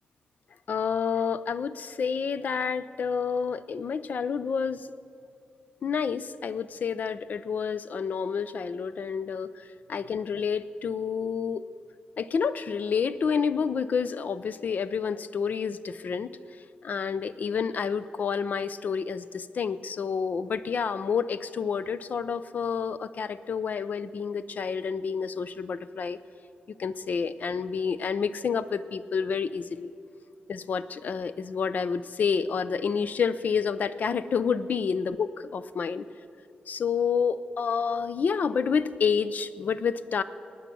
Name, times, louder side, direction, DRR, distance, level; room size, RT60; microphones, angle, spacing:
voice 1, 0.7-4.9 5.8-11.6 12.2-16.3 16.8-26.2 26.8-29.9 30.5-36.0 36.7-40.2, left 6 dB, 55° left, 15 dB, 0.5 m, -29 dB
20.0 x 9.3 x 6.1 m, 2.5 s
wide cardioid pair, 120°, 3 cm